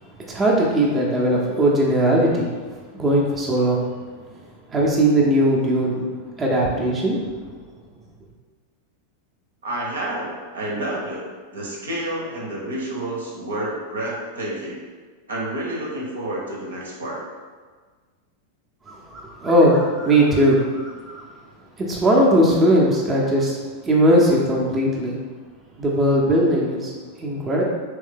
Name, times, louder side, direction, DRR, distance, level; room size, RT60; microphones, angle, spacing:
voice 1, 0.2-3.9 4.7-6.0 6.4-7.2 18.9-21.2 21.8-23.6 23.8-25.2 25.8-27.6, right 1 dB, 20° right, -3 dB, 0.7 m, -19 dB
voice 2, 9.6-11.2 11.5-14.8 15.3-17.2, right 1 dB, 70° right, -3 dB, 0.9 m, -29 dB
3.4 x 3.1 x 3.6 m, 1.5 s
figure-of-eight pair, 90°, 0 cm